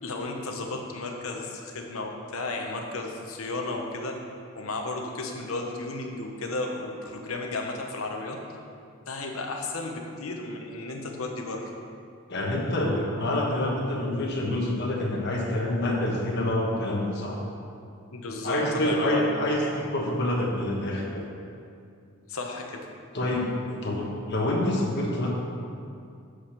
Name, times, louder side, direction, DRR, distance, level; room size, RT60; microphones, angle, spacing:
voice 1, 0.0-4.2 4.5-8.4 9.1-11.7 18.1-19.3 22.3-22.9, left 2 dB, 75° left, 2 dB, 1.0 m, -33 dB
voice 2, 12.3-17.4 18.4-21.2 23.1-23.5 23.8-25.3, left 1 dB, 50° left, -2 dB, 1.4 m, -27 dB
7.9 x 5.0 x 5.9 m, 2.4 s
head